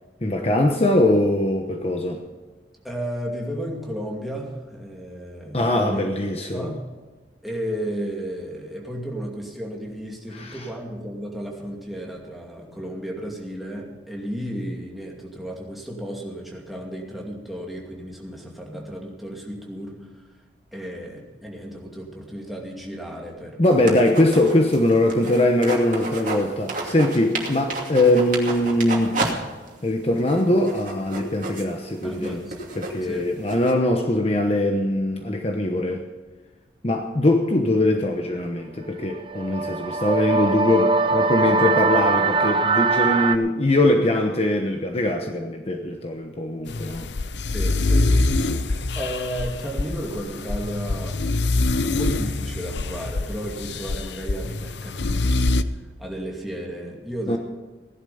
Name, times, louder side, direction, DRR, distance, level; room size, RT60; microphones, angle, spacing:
voice 1, 0.2-2.2 5.5-6.7 10.3-10.6 23.6-29.2 29.8-32.4 32.8-36.0 36.8-47.1 57.3-57.4, left 1 dB, 35° left, 4 dB, 1.0 m, -21 dB
voice 2, 2.8-6.2 6.5-6.8 7.4-20.1 20.7-24.0 32.0-32.5 33.0-33.3 36.8-36.9 47.5-55.6 56.0-57.4, equal, ahead, -2 dB, 2.5 m, -33 dB
sound 1, 23.6-26.4 26.7-29.3 29.7-29.8 30.2-33.7, right 3 dB, 45° right, 2.6 m, -31 dB
sound 2, 39.1-43.4, right 4 dB, 25° right, 0.7 m, -21 dB
sound 3, 46.7-55.6, left 2 dB, 80° left, 0.7 m, -24 dB
17.0 x 11.0 x 5.6 m, 1.3 s
head